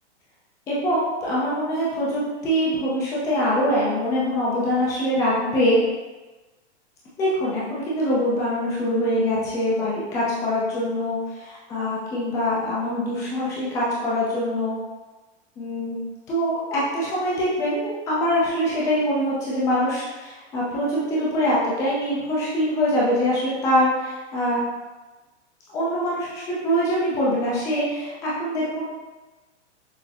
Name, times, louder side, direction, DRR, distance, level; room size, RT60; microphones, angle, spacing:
voice 1, 0.7-5.8 7.2-14.8 15.6-16.0 16.3-24.6 25.7-28.8, equal, 10° left, -7 dB, 0.4 m, -24 dB
6.1 x 2.1 x 2.9 m, 1.2 s
hypercardioid pair, 150°, 35 cm